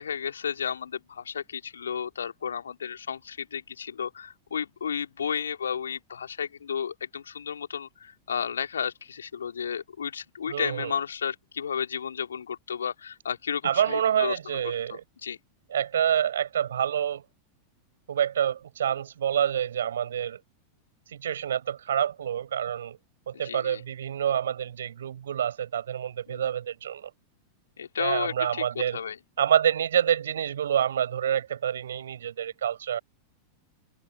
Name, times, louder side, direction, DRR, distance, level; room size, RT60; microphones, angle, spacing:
voice 1, 0.0-14.6 14.9-15.4 23.4-23.8 26.3-26.4 27.8-28.6 28.9-29.2, left 7 dB, 70° left, 3.6 m, -33 dB
voice 2, 10.5-10.9 13.6-15.0 15.7-17.2 18.1-20.4 21.1-23.0 23.3-27.1 28.0-29.0 29.4-33.0, right 9 dB, 65° right, 4.8 m, -27 dB
figure-of-eight pair, 90°, 0 cm